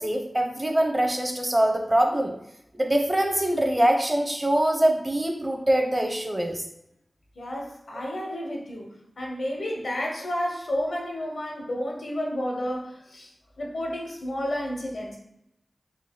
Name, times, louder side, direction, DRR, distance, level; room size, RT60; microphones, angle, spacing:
voice 1, 0.0-2.3 2.7-6.6, right 1 dB, 30° right, 3 dB, 0.7 m, -23 dB
voice 2, 7.4-8.9 9.2-13.3 13.6-15.2, equal, 85° left, 0 dB, 0.7 m, -31 dB
3.8 x 3.0 x 2.2 m, 0.79 s
cardioid pair, 40°, 0 cm